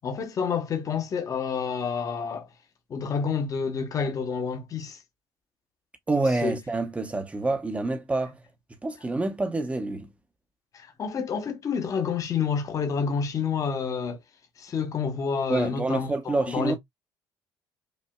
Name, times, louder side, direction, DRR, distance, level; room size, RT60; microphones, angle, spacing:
voice 1, 0.0-2.5 2.9-5.0 6.4-6.6 10.7-14.2 14.6-16.8, left 6 dB, 35° left, 1.1 m, -29 dB
voice 2, 6.1-8.4 8.8-10.1 15.5-16.8, right 2 dB, 15° right, 0.9 m, -27 dB
5.4 x 2.6 x 2.2 m
cardioid pair, 130°, 9 cm